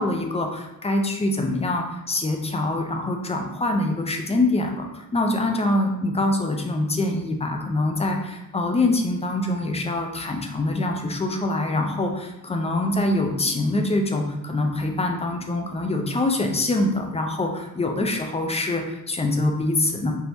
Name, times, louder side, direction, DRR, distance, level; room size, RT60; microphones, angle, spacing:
voice 1, 0.0-20.1, left 2 dB, 20° left, 3 dB, 0.3 m, -24 dB
4.4 x 3.4 x 2.6 m, 0.91 s
wide cardioid pair, 165°, 34 cm